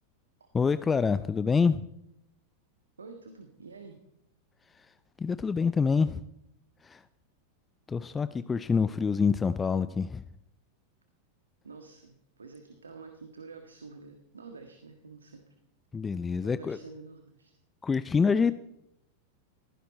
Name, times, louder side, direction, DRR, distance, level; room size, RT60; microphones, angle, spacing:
voice 1, 0.5-1.9 5.2-6.2 6.8-7.0 7.9-10.2 15.9-16.8 17.8-18.5, left 5 dB, 15° left, 14 dB, 0.5 m, -26 dB
voice 2, 3.0-4.0 11.6-15.4 16.4-17.5 18.2-18.4, right 4 dB, 75° right, 5 dB, 1.5 m, -47 dB
20.0 x 15.5 x 4.2 m, 0.81 s
figure-of-eight pair, 90°, 0 cm